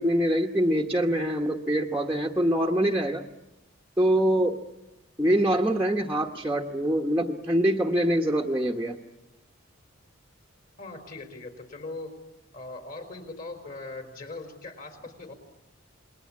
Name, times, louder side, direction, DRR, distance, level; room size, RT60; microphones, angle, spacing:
voice 1, 0.0-3.2 4.0-4.6 5.2-9.0, right 1 dB, 10° right, -1 dB, 1.0 m, -24 dB
voice 2, 10.8-12.2 12.5-15.3, left 2 dB, 40° left, 6 dB, 4.0 m, -40 dB
28.0 x 21.5 x 8.4 m, 0.93 s
head